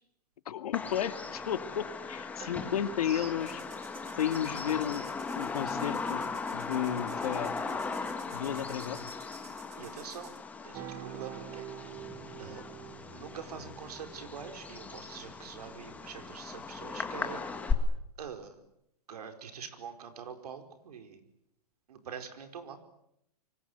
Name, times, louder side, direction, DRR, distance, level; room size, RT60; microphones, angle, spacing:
voice 1, 0.5-3.6 4.2-5.1 5.3-6.2 6.5-7.5 8.3-9.1, left 10 dB, 70° left, 10 dB, 2.2 m, -33 dB
Bird vocalization bird call bird song, 0.7-17.7, left 4 dB, 5° left, 1.8 m, -38 dB
voice 2, 2.4-3.3 9.8-10.3 10.6-11.7 12.4-12.7 13.1-17.5 18.2-18.6 19.1-21.2 21.9-22.8, right 7 dB, 75° right, 7 dB, 4.9 m, -45 dB
sound 1, 3.4-10.4, right 9 dB, 45° right, 4.8 m, -55 dB
sound 2, 10.7-16.0, right 10 dB, 20° right, 1.2 m, -47 dB
28.0 x 24.0 x 8.1 m, 0.78 s
hypercardioid pair, 165°, 20 cm